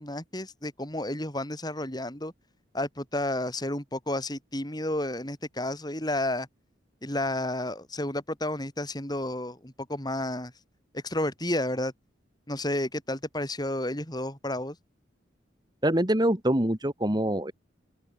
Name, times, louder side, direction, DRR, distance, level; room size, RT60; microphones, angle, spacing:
voice 1, 0.0-2.3 2.7-6.5 7.0-10.5 10.9-11.9 12.5-14.7, left 1 dB, 20° left, 5.0 m, -31 dB
voice 2, 15.8-17.5, right 1 dB, 20° right, 2.4 m, -24 dB
open air
head